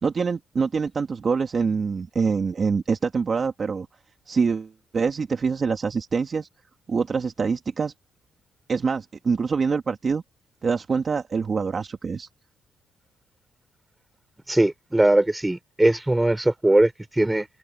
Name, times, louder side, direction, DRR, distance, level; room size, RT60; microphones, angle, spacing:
voice 1, 0.0-3.9 4.3-6.5 6.9-7.9 8.7-10.2 10.6-12.3, right 5 dB, 40° right, 2.2 m, -25 dB
voice 2, 14.5-17.5, right 1 dB, 10° right, 4.9 m, -20 dB
cardioid pair, 90°, 0 cm